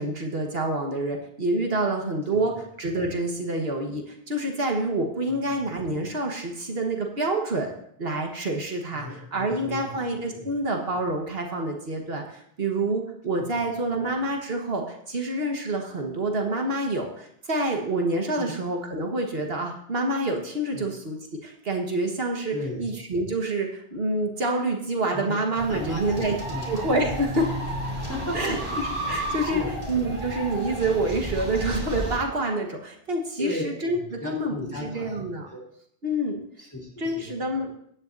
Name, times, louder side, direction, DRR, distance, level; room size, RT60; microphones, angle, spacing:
voice 1, 0.0-7.7 8.0-26.3 26.7-27.5 28.3-29.6 29.9-35.5 36.0-36.4 37.0-37.8, right 2 dB, 70° right, 1 dB, 1.7 m, -27 dB
voice 2, 5.3-5.6 8.9-10.0 10.3-10.5 13.4-13.7 18.3-18.5 20.7-20.9 22.5-22.9 25.1-25.4 25.7-26.7 28.0-28.8 29.3-29.7 33.4-35.2 35.5-35.6 36.6-37.3, left 1 dB, 15° left, -3 dB, 3.5 m, -35 dB
sound 1, 25.5-32.2, right 1 dB, 30° right, 3.2 m, -32 dB
16.5 x 10.5 x 2.7 m, 0.69 s
omnidirectional pair, 1.0 m